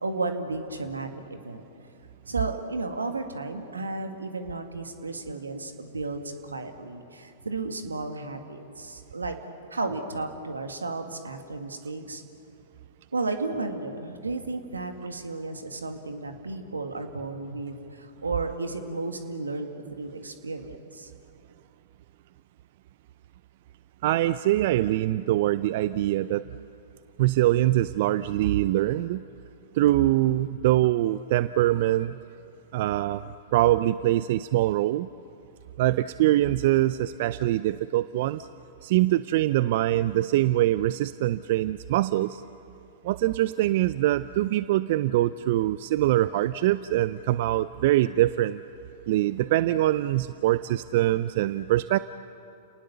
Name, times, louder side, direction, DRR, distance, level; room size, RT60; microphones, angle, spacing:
voice 1, 0.0-1.6 2.3-9.4 9.7-12.2 13.1-21.1, right 3 dB, 90° right, 6 dB, 2.0 m, -33 dB
voice 2, 24.0-26.4 27.2-29.2 29.8-32.2 32.7-35.1 35.8-38.5 38.8-42.4 43.0-48.6 49.1-52.0, right 15 dB, 55° right, 15 dB, 0.5 m, -23 dB
30.0 x 19.0 x 7.0 m, 2.6 s
hypercardioid pair, 105°, 0 cm